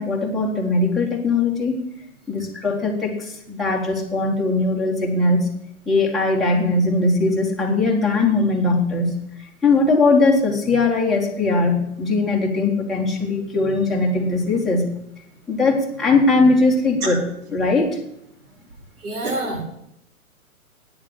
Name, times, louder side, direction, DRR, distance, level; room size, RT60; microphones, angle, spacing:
voice 1, 0.0-1.8 2.3-5.5 5.9-9.1 9.6-14.9 15.5-17.2 17.5-18.0, left 3 dB, ahead, -4 dB, 1.6 m, -20 dB
voice 2, 19.0-19.7, right 2 dB, 75° right, 2 dB, 4.7 m, -26 dB
9.7 x 7.3 x 8.8 m, 0.78 s
hypercardioid pair, 150°, 43 cm